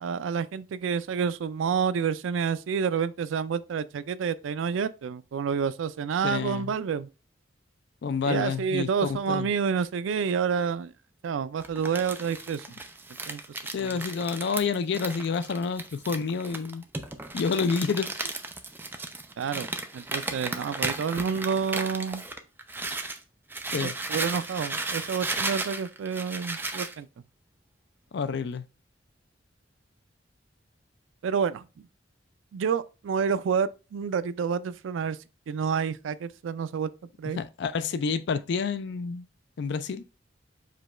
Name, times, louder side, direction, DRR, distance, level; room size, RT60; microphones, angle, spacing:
voice 1, 0.0-7.1 8.2-10.9 11.2-12.6 13.3-14.0 19.4-22.2 23.8-27.1 31.2-31.7 32.5-35.2 35.5-36.9 37.2-37.4, right 6 dB, 90° right, 0.4 m, -29 dB
voice 2, 6.2-6.7 8.0-9.5 13.7-16.8 17.3-18.4 23.7-23.9 28.1-28.7 37.4-39.3 39.6-40.0, left 5 dB, 65° left, 0.4 m, -29 dB
Crumpling crinkling, 11.6-23.2 23.5-26.9, right 2 dB, 10° right, 0.4 m, -35 dB
4.9 x 2.3 x 4.2 m
head